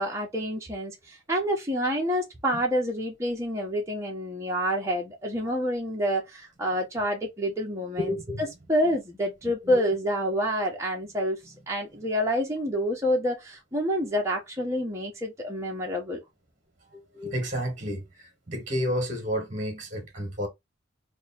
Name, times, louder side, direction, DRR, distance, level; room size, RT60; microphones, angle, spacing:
voice 1, 0.0-11.4 11.7-16.2, equal, 15° right, 0.9 m, -28 dB
voice 2, 8.0-8.4 9.7-9.8 16.9-18.0 18.5-20.5, equal, 40° right, 1.3 m, -30 dB
3.1 x 2.3 x 4.1 m
head